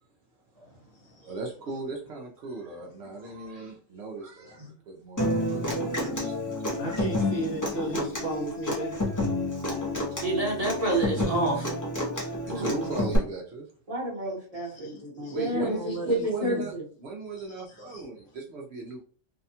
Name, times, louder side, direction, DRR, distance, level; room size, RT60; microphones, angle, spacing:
voice 1, 0.6-1.4 3.3-3.7 4.5-4.7 5.3-5.8 6.8-9.0 12.3-12.4 14.5-16.7 17.4-18.1, equal, 55° left, 0.8 m, -37 dB
voice 2, 1.2-6.9 7.9-8.0 9.6-9.8 10.6-10.7 12.5-13.7 15.3-19.0, right 3 dB, 65° right, 0.8 m, -38 dB
Human voice / Acoustic guitar, 5.2-13.2, left 1 dB, 20° left, 0.5 m, -30 dB
voice 3, 10.2-11.7 12.5-12.9 13.9-16.6, right 1 dB, 30° right, 1.0 m, -29 dB
2.7 x 2.2 x 2.7 m
omnidirectional pair, 1.3 m